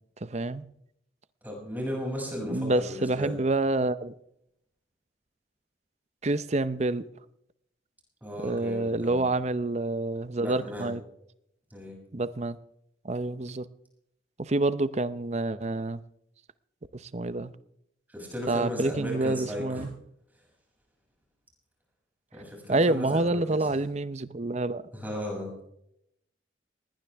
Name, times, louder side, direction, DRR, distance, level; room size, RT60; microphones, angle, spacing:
voice 1, 0.2-0.6 2.4-4.1 6.2-7.1 8.4-11.0 12.1-12.6 13.0-13.7 14.4-16.0 16.9-17.5 18.5-19.9 22.7-24.8, right 2 dB, 35° right, 0.6 m, -27 dB
voice 2, 1.4-3.3 8.2-9.2 10.4-10.9 11.7-12.0 18.1-19.8 22.3-23.7 24.9-25.6, equal, 10° right, 6.7 m, -35 dB
20.0 x 18.5 x 3.5 m
head